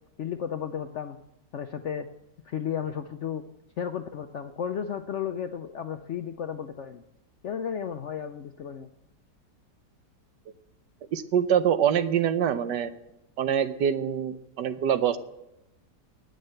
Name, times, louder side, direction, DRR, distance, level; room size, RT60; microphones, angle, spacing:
voice 1, 0.2-1.2 1.5-2.1 2.4-3.4 3.8-7.0 7.4-8.9, left 8 dB, 65° left, 8 dB, 0.7 m, -33 dB
voice 2, 11.1-12.9 13.4-15.2, right 9 dB, 75° right, 11 dB, 1.4 m, -25 dB
18.5 x 6.6 x 7.8 m, 0.91 s
omnidirectional pair, 1.9 m